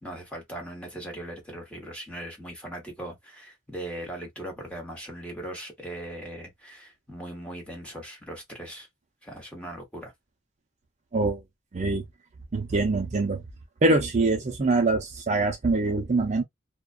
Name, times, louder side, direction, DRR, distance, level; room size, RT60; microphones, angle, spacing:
voice 1, 0.0-8.9 9.2-10.1, right 1 dB, 5° left, 1.0 m, -39 dB
voice 2, 11.7-12.0 12.5-13.4 13.8-16.4, right 3 dB, 40° right, 0.5 m, -24 dB
2.3 x 2.2 x 2.4 m
head